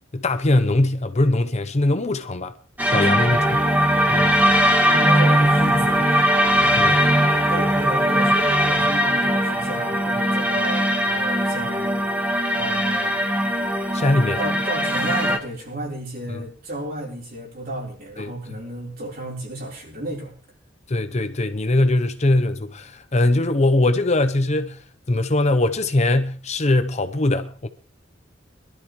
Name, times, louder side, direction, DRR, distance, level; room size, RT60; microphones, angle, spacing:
voice 1, 0.1-2.5 2.9-3.6 4.1-4.3 6.7-6.9 13.9-14.4 16.3-16.4 18.2-18.3 20.9-27.7, left 2 dB, 35° left, 0.8 m, -21 dB
sound 1, 2.8-15.4, equal, 10° right, 1.4 m, -20 dB
voice 2, 2.9-3.3 4.9-7.2 7.5-12.0 12.5-13.2 14.4-20.3, right 1 dB, 50° right, 4.2 m, -33 dB
22.0 x 12.5 x 3.2 m
head